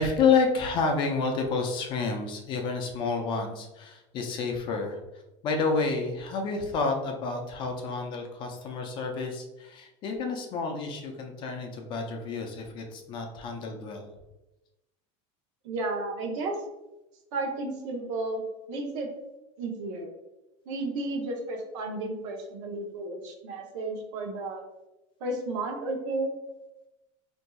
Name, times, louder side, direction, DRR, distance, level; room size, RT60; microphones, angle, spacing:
voice 1, 0.0-5.0 5.4-14.1, left 4 dB, 30° left, 3 dB, 0.4 m, -29 dB
voice 2, 15.6-16.5 17.3-18.4 18.7-19.1 19.6-20.1 20.7-24.6 25.2-26.3, right 2 dB, 70° right, 3 dB, 0.7 m, -33 dB
4.2 x 2.6 x 2.2 m, 0.98 s
supercardioid pair, 170°, 16 cm